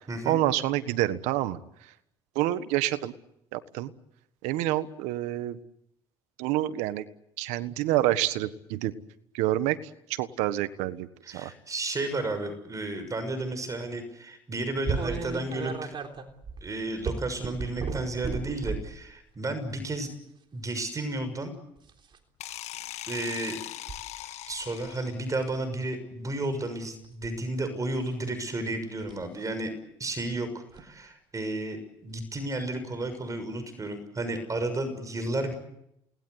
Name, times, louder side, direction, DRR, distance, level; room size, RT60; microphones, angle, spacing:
voice 1, 0.2-1.6 2.3-3.1 3.5-3.9 4.4-5.6 6.4-7.1 7.4-8.9 9.3-9.8 10.1-11.5, right 14 dB, 85° right, 13 dB, 1.5 m, -27 dB
voice 2, 11.2-16.0 16.6-20.1 20.5-21.5 23.1-23.6 24.5-29.7 30.0-35.5, right 2 dB, 30° right, 9 dB, 6.4 m, -32 dB
sound 1, 14.8-19.0 19.7-20.0 21.8-22.2 23.9-24.0 24.5-24.9 25.3-25.6 27.0-27.4 29.0-29.2 30.7-30.8 32.4-32.5 33.1-33.2, right 5 dB, 45° right, 3.7 m, -34 dB
sound 2, 22.4-25.3, left 13 dB, 70° left, 1.6 m, -40 dB
29.0 x 19.5 x 8.2 m, 0.80 s
supercardioid pair, 85°, 12 cm